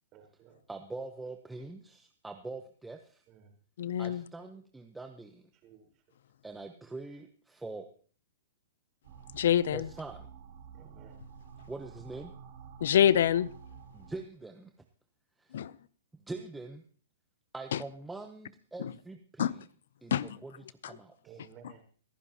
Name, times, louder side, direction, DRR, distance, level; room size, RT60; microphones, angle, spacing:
voice 1, 0.1-0.6 3.3-3.5 5.6-5.9 10.7-11.2 21.2-21.8, right 7 dB, 30° right, 4.2 m, -55 dB
voice 2, 0.7-3.2 4.0-5.4 6.4-7.9 9.7-10.3 11.7-12.3 13.9-14.7 15.4-15.6 16.3-16.8 17.5-19.7 20.0-21.5, right 3 dB, 5° right, 0.9 m, -44 dB
voice 3, 3.8-4.2 9.3-9.8 12.8-13.5 15.5-15.7 19.4-19.5 20.1-20.3, left 10 dB, 70° left, 0.5 m, -25 dB
sound 1, 9.0-14.2, right 7 dB, 50° right, 3.9 m, -50 dB
25.5 x 10.0 x 2.9 m
hypercardioid pair, 135°, 0 cm